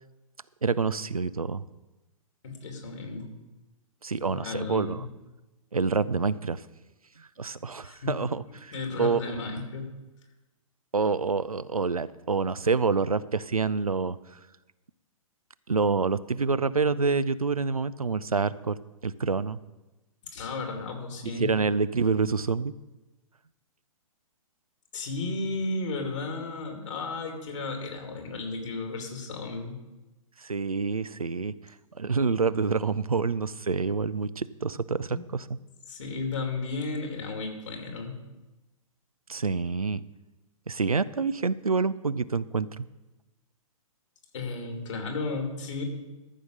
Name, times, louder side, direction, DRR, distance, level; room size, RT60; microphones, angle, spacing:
voice 1, 0.6-1.6 4.0-5.1 5.7-6.6 7.4-8.7 9.0-9.2 10.9-14.2 15.7-18.8 19.0-19.6 21.4-22.7 30.4-31.5 32.0-35.5 39.3-40.0 40.7-42.8, right 4 dB, 90° right, 16 dB, 0.4 m, -27 dB
voice 2, 2.4-3.3 4.2-5.0 7.8-8.1 8.7-9.9 20.2-21.5 24.9-29.8 35.1-35.2 35.9-38.2 44.3-45.8, left 3 dB, 60° left, 3 dB, 2.6 m, -34 dB
13.5 x 5.6 x 6.4 m, 1.1 s
figure-of-eight pair, 115°, 18 cm